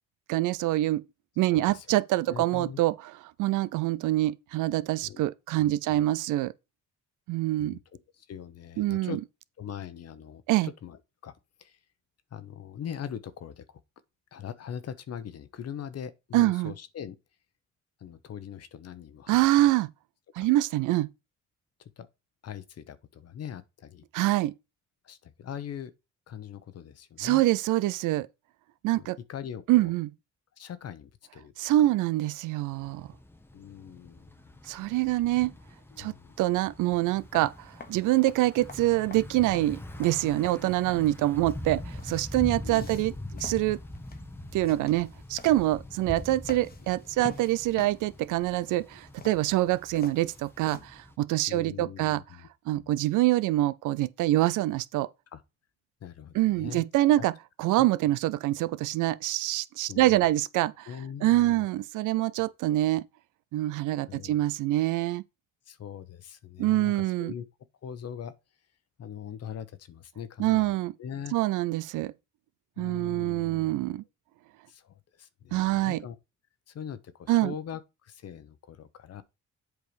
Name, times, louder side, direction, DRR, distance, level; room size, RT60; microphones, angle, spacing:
voice 1, 0.3-1.0 1.4-2.9 3.4-6.5 7.3-7.8 8.8-9.2 10.5-10.7 16.3-16.7 19.3-19.9 20.4-21.1 24.1-24.5 27.2-28.3 28.8-29.2 29.7-30.1 31.6-33.1 34.7-35.5 36.0-43.1 43.4-43.8 44.5-52.2 52.7-55.1 56.3-57.3 57.6-60.9 61.2-63.1 63.5-65.2 66.6-67.3 70.4-70.9 71.3-72.1 72.8-74.0 75.5-76.0 77.3-77.5, right 16 dB, 90° right, 0.5 m, -25 dB
voice 2, 1.5-1.9 2.2-2.8 5.0-5.2 5.6-6.0 7.6-7.8 8.1-9.2 9.6-11.3 11.6-11.8 12.3-13.8 14.3-17.2 18.0-19.7 20.4-20.5 21.8-22.1 22.4-24.0 25.0-25.9 26.3-27.4 28.9-29.9 30.5-31.5 31.8-31.9 33.5-34.6 35.9-36.4 42.6-43.4 47.1-47.3 51.5-53.0 55.3-55.4 56.0-57.3 57.8-57.9 59.8-60.3 60.9-61.7 64.1-64.5 65.7-67.4 67.8-68.3 69.0-71.4 72.8-74.0 74.7-76.2 76.7-79.2, left 8 dB, 55° left, 0.9 m, -42 dB
Thunder / Bicycle, 32.7-51.1, left 1 dB, 5° left, 0.9 m, -43 dB
sound 1, 36.9-50.9, left 4 dB, 30° left, 1.2 m, -49 dB
7.9 x 4.8 x 5.0 m
cardioid pair, 90°, 30 cm